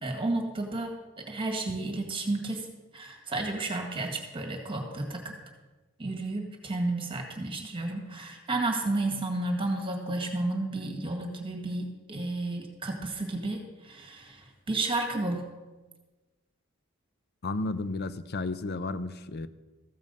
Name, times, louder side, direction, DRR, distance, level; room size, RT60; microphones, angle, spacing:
voice 1, 0.0-2.7 2.9-5.3 6.0-15.5, right 2 dB, 25° right, 3 dB, 1.8 m, -32 dB
voice 2, 17.4-19.5, left 3 dB, 55° left, 13 dB, 0.6 m, -33 dB
14.0 x 7.4 x 5.4 m, 1.2 s
head